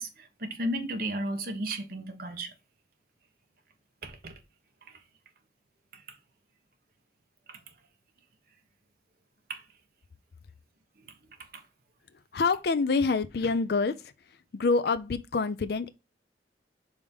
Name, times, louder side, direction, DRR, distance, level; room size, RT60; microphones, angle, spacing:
voice 1, 0.0-2.5 4.0-4.3 7.5-7.6 9.5-9.6, right 1 dB, 55° right, 1.1 m, -34 dB
voice 2, 12.3-14.0 14.5-15.9, left 4 dB, 60° left, 0.4 m, -26 dB
5.0 x 3.6 x 5.3 m
head